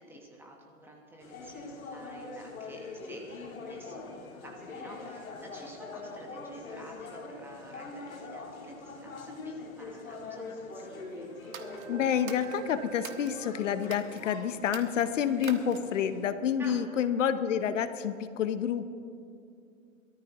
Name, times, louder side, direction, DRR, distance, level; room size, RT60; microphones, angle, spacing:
voice 1, 0.0-11.3 16.6-16.8, right 1 dB, 5° right, 0 dB, 1.1 m, -51 dB
sound 1, 1.2-16.3, left 3 dB, 90° left, 2.3 m, -43 dB
Wind instrument woodwind instrument, 10.8-15.0, right 5 dB, 20° right, 0.8 m, -47 dB
sound 2, 11.4-13.4 13.8-14.2 14.6-16.0, right 7 dB, 80° right, 1.4 m, -46 dB
voice 2, 11.9-19.0, left 8 dB, 65° left, 12 dB, 0.8 m, -29 dB
22.5 x 13.5 x 2.9 m, 2.5 s
hypercardioid pair, 150°, 41 cm